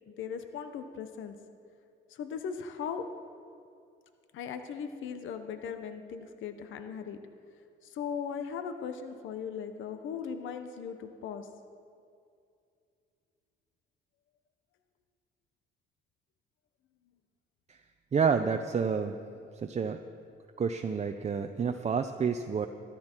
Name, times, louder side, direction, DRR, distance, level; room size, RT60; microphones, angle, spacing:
voice 1, 0.1-1.4 2.1-3.1 4.3-7.2 7.8-11.5, left 7 dB, 80° left, 8 dB, 0.9 m, -38 dB
voice 2, 18.1-19.2 19.5-20.0 20.6-22.7, right 6 dB, 35° right, 7 dB, 0.6 m, -29 dB
13.5 x 13.0 x 4.5 m, 2.4 s
cardioid pair, 90°, 20 cm